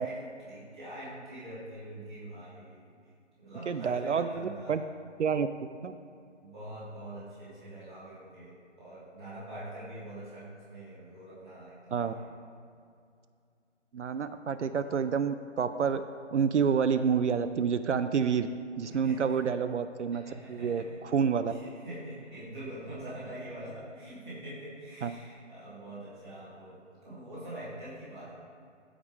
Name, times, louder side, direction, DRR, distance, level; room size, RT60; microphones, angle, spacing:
voice 1, 0.0-2.9 3.4-4.8 6.4-12.3 18.9-19.2 20.2-20.9 21.5-28.3, right 1 dB, 5° right, -18 dB, 1.0 m, -44 dB
voice 2, 3.7-4.3 4.7-4.8 5.2-5.5 5.8-5.9 11.9-12.1 13.9-16.0 16.3-18.5 18.8-20.2 20.5-21.5 25.0-25.1, right 6 dB, 70° right, 10 dB, 0.5 m, -28 dB
14.0 x 5.0 x 3.6 m, 2.4 s
hypercardioid pair, 180°, 37 cm